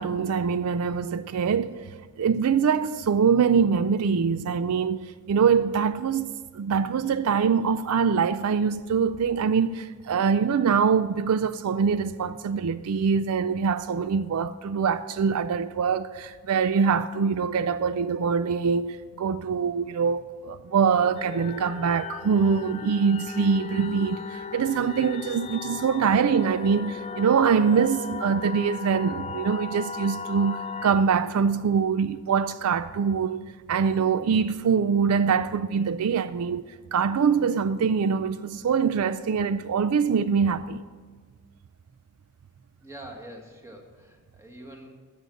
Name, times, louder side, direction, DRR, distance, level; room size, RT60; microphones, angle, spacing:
voice 1, 0.0-1.8 2.2-40.8, right 6 dB, 75° right, 0.4 m, -24 dB
sound 1, 21.2-30.9, left 5 dB, 30° left, 0.3 m, -37 dB
voice 2, 42.8-44.9, right 1 dB, 15° right, 1.6 m, -44 dB
13.0 x 7.9 x 6.3 m
head